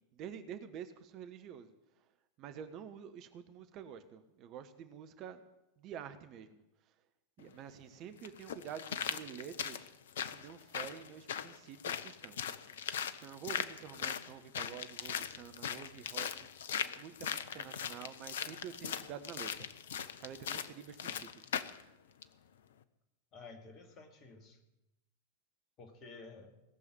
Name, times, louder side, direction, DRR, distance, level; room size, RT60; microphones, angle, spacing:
voice 1, 0.0-1.7 2.4-5.4 5.8-6.6 7.4-9.9 10.3-12.4 13.2-16.5 17.0-19.7 20.2-21.5, right 8 dB, 40° right, 10 dB, 1.0 m, -48 dB
sound 1, 7.4-7.5 8.2-21.8 22.2-22.3, left 8 dB, 60° left, 0.7 m, -40 dB
voice 2, 23.3-24.6 25.8-26.6, left 3 dB, 35° left, 4 dB, 2.4 m, -52 dB
18.0 x 7.0 x 9.7 m, 0.94 s
figure-of-eight pair, 90°, 0 cm